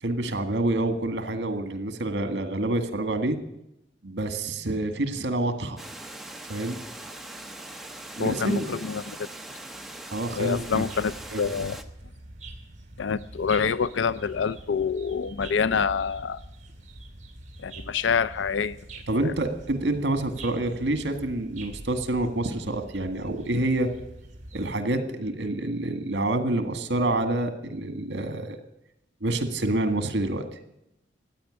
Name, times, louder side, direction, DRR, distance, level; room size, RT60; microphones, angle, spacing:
voice 1, 0.0-3.4 4.0-5.8 6.5-6.8 8.2-8.7 10.1-10.8 11.3-11.5 19.1-23.9 24.5-28.6 29.2-30.5, right 2 dB, 70° right, 9 dB, 1.8 m, -27 dB
Water, 5.8-11.8, right 1 dB, ahead, 1.0 m, -41 dB
voice 2, 8.2-9.3 10.4-11.8 13.0-16.4 17.6-18.8 19.2-19.3, left 6 dB, 85° left, 17 dB, 0.5 m, -26 dB
sound 1, 10.5-24.7, right 2 dB, 40° right, 2.9 m, -45 dB
15.0 x 9.5 x 9.9 m, 0.84 s
head